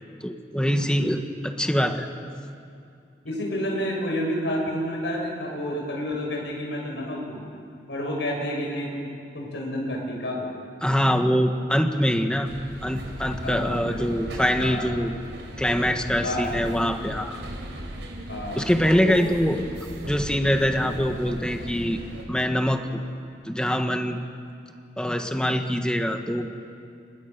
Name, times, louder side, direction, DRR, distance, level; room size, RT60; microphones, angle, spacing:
voice 1, 0.2-2.1 10.8-12.5 12.8-15.1 15.6-17.4 18.5-19.6 20.1-22.0 22.3-23.0 23.4-24.2 25.0-26.5, equal, 5° left, 5 dB, 1.4 m, -24 dB
voice 2, 3.2-7.4 7.9-9.1 9.3-10.5 13.4-14.0 14.6-14.9 16.2-16.5 18.3-18.7 19.0-19.2 20.8-21.0, equal, 80° left, 0 dB, 6.0 m, -29 dB
sound 1, 12.4-22.2, equal, 85° right, 4.9 m, -37 dB
30.0 x 26.0 x 6.8 m, 2.5 s
head